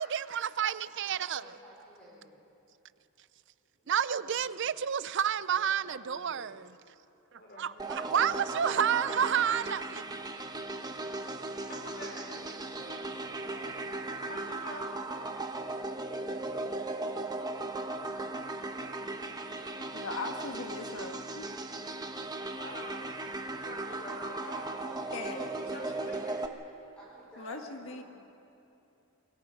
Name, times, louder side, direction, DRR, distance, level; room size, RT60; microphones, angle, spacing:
voice 1, 0.0-1.4 3.9-6.6 7.6-10.0, right 8 dB, 55° right, 0.5 m, -30 dB
voice 2, 0.9-2.4 3.8-4.8 5.5-6.6 12.1-14.3 14.6-16.5 18.7-18.9 26.4-28.0, right 1 dB, 5° left, 5.1 m, -54 dB
voice 3, 7.4-8.8 11.7-12.3 14.3-14.8 21.7-21.8 22.6-26.4, left 1 dB, 45° left, 4.6 m, -46 dB
sound 1, 7.8-26.5, right 2 dB, 20° right, 1.0 m, -37 dB
voice 4, 19.9-21.5 25.1-25.5 27.4-28.0, left 3 dB, 60° left, 1.6 m, -39 dB
29.0 x 22.0 x 5.2 m
head